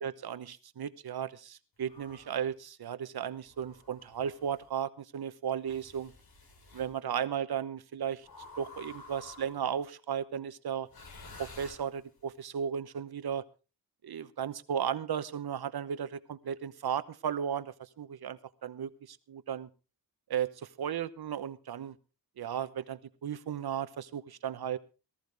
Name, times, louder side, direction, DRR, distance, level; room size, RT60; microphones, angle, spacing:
voice 1, 0.0-6.1 6.7-8.3 8.6-10.9 11.4-13.4 14.0-19.7 20.3-22.0 22.4-24.8, right 8 dB, 85° right, 13 dB, 1.0 m, -35 dB
sound 1, 1.8-2.5 3.5-4.7 5.6-6.9 8.2-9.8 10.8-12.3, left 3 dB, 75° left, 3.6 m, -51 dB
19.0 x 14.0 x 3.4 m, 0.33 s
wide cardioid pair, 110°, 37 cm